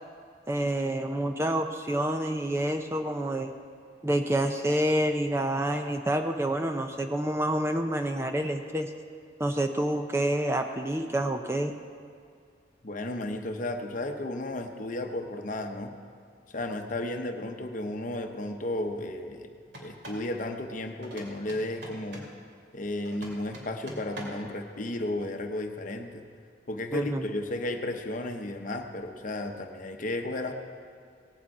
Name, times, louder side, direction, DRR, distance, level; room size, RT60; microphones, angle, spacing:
voice 1, 0.5-3.5 4.0-8.9 9.4-11.7 26.9-27.3, right 1 dB, 15° right, 5 dB, 0.5 m, -28 dB
voice 2, 12.8-15.9 16.5-19.5 19.8-22.2 22.7-26.2 26.7-30.5, left 1 dB, 45° left, 5 dB, 0.9 m, -33 dB
sound 1, 19.7-20.3 21.0-22.4 23.0-24.5, right 1 dB, 65° right, 2.8 m, -44 dB
18.0 x 8.8 x 4.8 m, 2.2 s
head